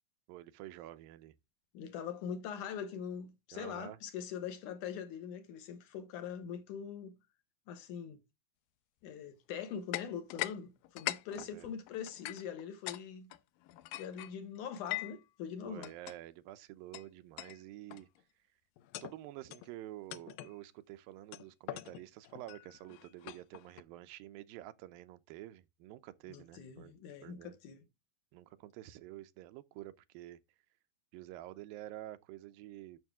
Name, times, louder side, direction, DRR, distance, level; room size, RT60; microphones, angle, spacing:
voice 1, 0.3-1.4 3.5-4.0 11.3-11.7 15.6-18.1 19.0-26.9 27.2-27.6 28.3-30.4 31.1-33.0, right 15 dB, 90° right, 2.5 m, -49 dB
voice 2, 1.7-7.2 7.7-8.2 9.0-13.3 13.9-15.9 26.3-27.9, left 7 dB, 70° left, 2.4 m, -43 dB
sound 1, 9.9-10.6 10.8-13.0 13.3-15.2 15.8-16.2 16.9-17.0 17.4-17.6 17.9-18.2 18.8-19.2 19.5-19.7 20.1-20.5 21.3-23.8, left 17 dB, 85° left, 2.4 m, -42 dB
9.2 x 6.7 x 3.5 m
omnidirectional pair, 4.0 m